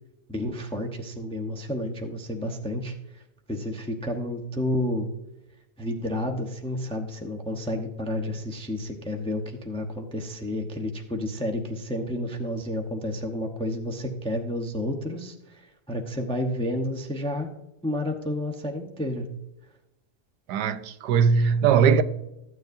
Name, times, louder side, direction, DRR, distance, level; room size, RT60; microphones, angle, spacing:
voice 1, 0.3-2.9 3.5-5.1 5.8-17.5 17.8-19.2, left 1 dB, 5° left, 0.6 m, -30 dB
voice 2, 20.5-22.0, right 6 dB, 80° right, 1.2 m, -20 dB
14.0 x 9.4 x 2.6 m
omnidirectional pair, 1.8 m